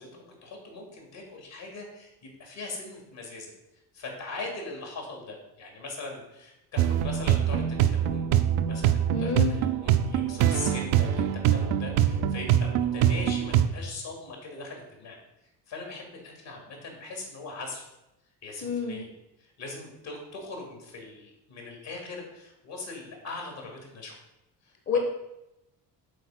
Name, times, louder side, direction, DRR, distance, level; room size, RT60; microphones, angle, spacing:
voice 1, 0.0-2.1 2.4-3.5 3.9-8.3 8.6-15.2 15.7-17.8 18.4-19.1 19.4-24.1 24.6-25.0, left 3 dB, 60° left, 1 dB, 2.6 m, -40 dB
sound 1, 6.8-13.7, right 10 dB, 70° right, 0.6 m, -24 dB
voice 2, 9.1-9.6 18.6-19.1 24.9-25.0, left 6 dB, 25° left, 4 dB, 1.0 m, -28 dB
6.6 x 4.1 x 6.0 m, 0.92 s
hypercardioid pair, 55°, 48 cm